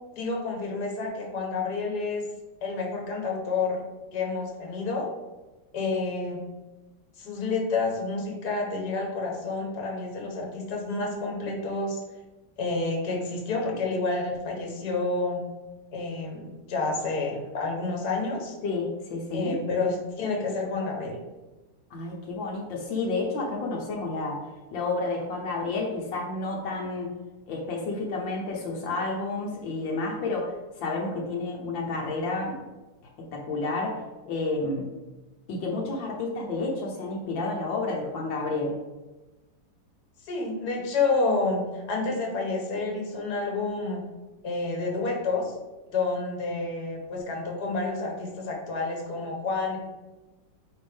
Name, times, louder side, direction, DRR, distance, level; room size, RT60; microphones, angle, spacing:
voice 1, 0.2-2.2 2.6-3.8 4.1-5.1 5.7-6.4 7.2-12.0 12.6-15.4 15.9-18.6 19.3-21.2 40.2-44.0 44.4-45.5 45.9-49.8, left 3 dB, 60° left, 1 dB, 1.8 m, -29 dB
voice 2, 18.6-19.5 21.9-24.4 24.7-27.1 27.5-32.6 33.2-34.9 35.5-38.8, left 3 dB, 85° left, -1 dB, 1.7 m, -30 dB
8.8 x 3.7 x 3.5 m, 1.1 s
omnidirectional pair, 2.0 m